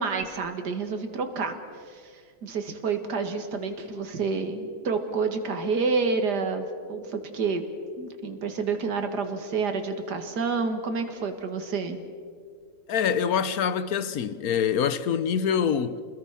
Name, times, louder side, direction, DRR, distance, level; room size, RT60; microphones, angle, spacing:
voice 1, 0.0-1.5 1.9-2.0 2.4-7.6 8.0-12.0, right 4 dB, 65° right, 2.4 m, -29 dB
voice 2, 12.9-16.0, left 7 dB, 60° left, 1.2 m, -25 dB
28.5 x 20.5 x 5.8 m
omnidirectional pair, 1.9 m